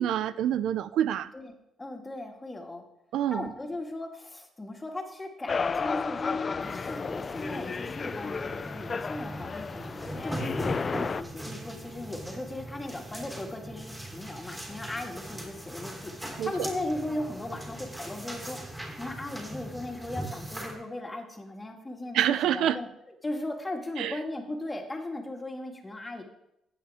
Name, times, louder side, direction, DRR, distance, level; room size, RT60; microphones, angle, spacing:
voice 1, 0.0-1.3 3.1-3.5 16.4-16.5 22.1-22.8 24.0-24.2, right 10 dB, 80° right, 15 dB, 0.4 m, -26 dB
voice 2, 1.8-2.8 3.3-22.9 23.2-26.2, left 1 dB, 20° left, 2 dB, 2.1 m, -37 dB
sound 1, 5.5-11.2, left 5 dB, 40° left, 0.4 m, -32 dB
sound 2, 6.6-20.7, right 1 dB, 10° right, 3.3 m, -40 dB
14.5 x 8.6 x 3.6 m, 0.83 s
cardioid pair, 90°, 0 cm